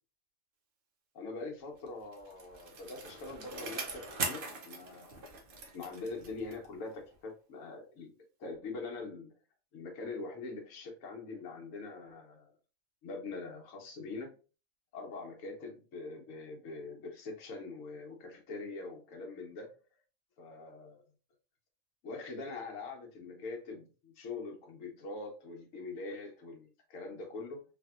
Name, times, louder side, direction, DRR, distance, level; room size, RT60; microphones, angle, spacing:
voice 1, 1.1-5.3 5.7-8.1 8.4-9.3 9.7-12.5 13.0-14.4 14.9-19.7 20.4-21.0 22.0-27.6, left 3 dB, 70° left, 1.2 m, -43 dB
Bicycle, 1.9-6.8 7.1-7.2, right 4 dB, 50° right, 0.7 m, -41 dB
3.4 x 2.6 x 2.3 m
omnidirectional pair, 1.4 m